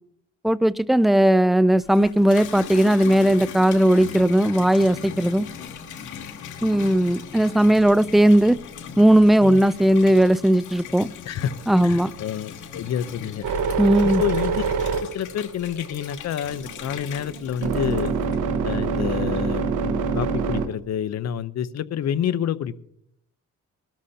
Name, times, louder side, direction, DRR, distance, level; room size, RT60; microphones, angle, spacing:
voice 1, 0.4-5.5 6.6-8.6 9.0-11.1 11.7-12.1 13.8-14.2, right 1 dB, ahead, 17 dB, 0.4 m, -17 dB
Water tap faucet / Bathtub (filling or washing), 1.7-18.6 19.1-19.7, left 7 dB, 75° left, 2.4 m, -39 dB
voice 2, 11.8-13.5 14.0-14.6 15.0-18.1 18.6-22.8, left 9 dB, 60° left, 15 dB, 0.8 m, -28 dB
sound 1, 13.4-16.1 16.5-20.7, right 5 dB, 85° right, 1.4 m, -25 dB
21.5 x 13.0 x 2.8 m, 0.72 s
cardioid pair, 90°, 30 cm